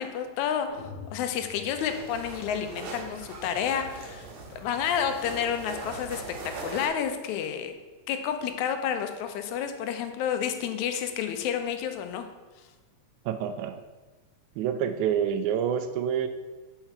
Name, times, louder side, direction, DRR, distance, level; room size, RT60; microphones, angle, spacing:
voice 1, 0.0-4.3 4.6-6.4 6.6-7.7 8.1-12.3, left 8 dB, 80° left, 7 dB, 2.0 m, -30 dB
sound 1, 0.7-2.8, left 5 dB, 45° left, 1.8 m, -46 dB
sound 2, 1.7-6.9, right 3 dB, 65° right, 2.1 m, -40 dB
voice 2, 13.3-13.8 14.6-16.3, right 8 dB, 85° right, 9 dB, 2.0 m, -27 dB
5.7 x 4.4 x 5.7 m, 1.3 s
omnidirectional pair, 3.3 m